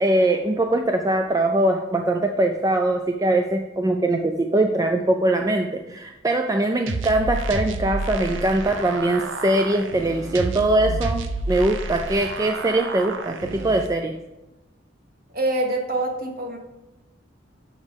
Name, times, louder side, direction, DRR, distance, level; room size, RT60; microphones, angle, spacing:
voice 1, 0.0-14.1, right 1 dB, 20° right, 5 dB, 0.3 m, -22 dB
sound 1, 6.9-13.9, right 2 dB, 80° right, 0.6 m, -30 dB
voice 2, 15.3-16.6, right 2 dB, 50° right, 2 dB, 1.2 m, -25 dB
7.2 x 5.2 x 5.3 m, 1.0 s
head